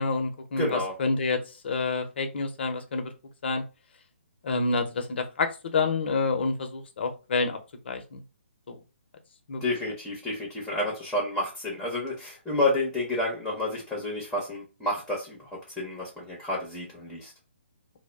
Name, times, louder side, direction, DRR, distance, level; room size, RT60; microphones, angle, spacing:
voice 1, 0.0-3.1 3.4-3.6 4.4-7.6 7.9-8.2 8.7-8.8 9.5-9.6, left 3 dB, 60° left, 5 dB, 0.6 m, -28 dB
voice 2, 0.6-0.9 9.6-17.3, left 1 dB, 5° left, -3 dB, 0.7 m, -30 dB
2.2 x 2.0 x 3.2 m, 0.30 s
hypercardioid pair, 145°, 7 cm